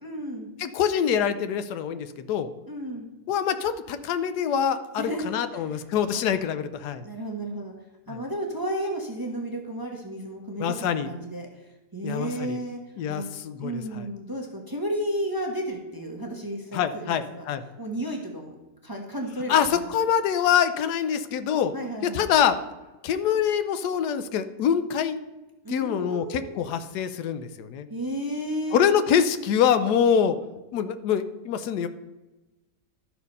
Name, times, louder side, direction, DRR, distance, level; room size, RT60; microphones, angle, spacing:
voice 1, 0.0-0.5 2.7-3.0 5.0-5.8 6.1-6.2 7.0-7.7 8.1-11.6 11.9-12.8 13.1-13.3 13.6-17.5 17.8-18.5 18.8-19.9 21.7-22.3 25.6-26.7 27.9-28.8, right 1 dB, 15° right, 1 dB, 0.8 m, -33 dB
voice 2, 0.6-2.5 3.3-7.0 8.1-8.2 10.6-11.1 12.0-12.6 13.0-14.1 16.7-17.6 19.5-21.7 22.0-22.6 23.0-25.2 25.7-27.9 28.7-30.4 30.7-31.9, left 8 dB, 80° left, 11 dB, 1.2 m, -25 dB
12.5 x 4.5 x 5.4 m, 1.1 s
omnidirectional pair, 1.7 m